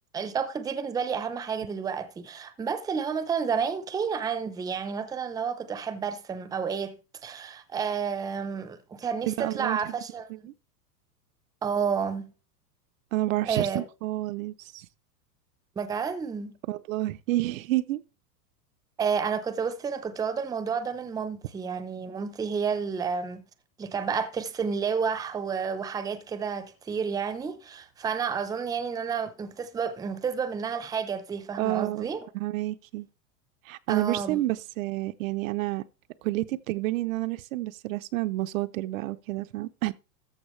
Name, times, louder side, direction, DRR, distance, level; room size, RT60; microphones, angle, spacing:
voice 1, 0.1-7.0 7.2-10.5 11.6-12.3 13.5-13.8 15.8-16.5 19.0-23.4 23.8-32.3 33.9-34.4, right 6 dB, 10° right, 0.6 m, -30 dB
voice 2, 9.3-9.9 13.1-14.9 16.7-18.0 31.6-32.1 32.3-33.1 33.6-35.8 36.2-39.9, right 17 dB, 55° right, 0.6 m, -29 dB
14.0 x 6.1 x 3.1 m
hypercardioid pair, 125°, 50 cm